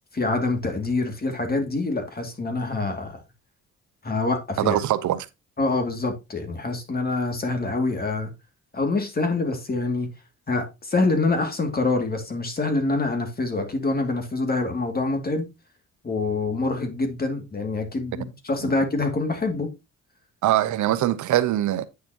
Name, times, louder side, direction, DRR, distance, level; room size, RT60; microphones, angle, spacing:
voice 1, 0.1-3.2 4.0-4.8 5.6-8.3 8.7-10.1 10.5-15.5 16.0-19.7, left 3 dB, 30° left, 2.4 m, -25 dB
voice 2, 4.6-5.3 18.6-18.7 20.4-21.8, right 13 dB, 75° right, 0.8 m, -22 dB
9.3 x 6.7 x 2.9 m
cardioid pair, 90°, 30 cm